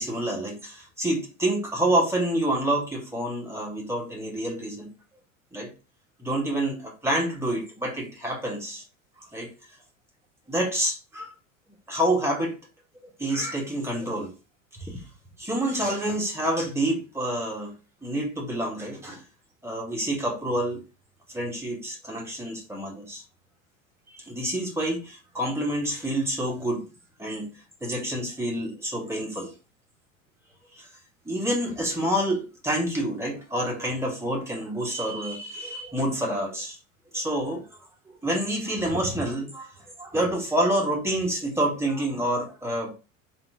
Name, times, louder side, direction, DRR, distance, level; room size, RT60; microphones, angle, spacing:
voice 1, 0.0-4.9 5.5-5.7 6.2-8.8 9.2-9.5 10.5-11.3 11.9-12.5 13.2-14.3 14.8-14.9 15.4-17.7 18.0-19.2 19.6-20.8 21.3-23.2 24.1-26.8 27.2-27.5 27.8-29.5 31.2-36.8 37.1-37.6 38.1-39.7 40.0-42.9, right 1 dB, 5° right, 1.5 m, -28 dB
3.7 x 2.9 x 3.6 m
hypercardioid pair, 80°, 40 cm